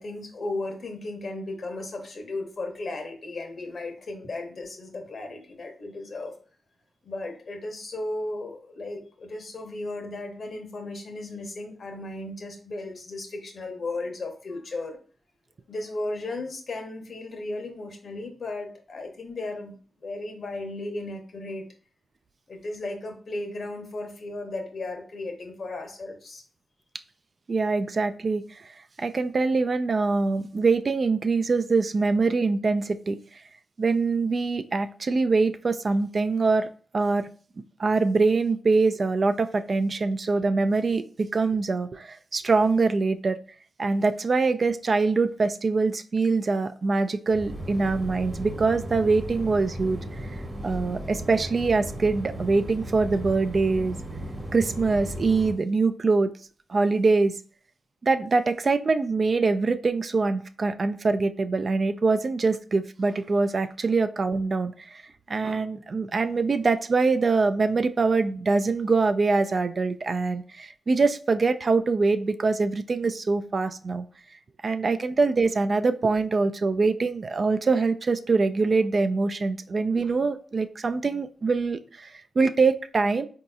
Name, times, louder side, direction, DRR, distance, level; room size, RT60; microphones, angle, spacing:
voice 1, 0.0-6.3 7.0-15.0 15.7-21.6 22.5-26.4, left 2 dB, 60° left, 4 dB, 0.9 m, -35 dB
voice 2, 27.5-33.2 33.8-36.7 36.9-37.3 37.8-43.4 43.8-50.3 50.6-54.0 54.5-56.3 56.7-57.4 58.0-65.0 65.3-74.1 74.6-83.3, right 4 dB, 50° right, 10 dB, 0.3 m, -24 dB
sound 1, 47.3-55.5, equal, 35° right, 1.1 m, -36 dB
3.9 x 2.7 x 2.3 m, 0.42 s
cardioid pair, 55°, 0 cm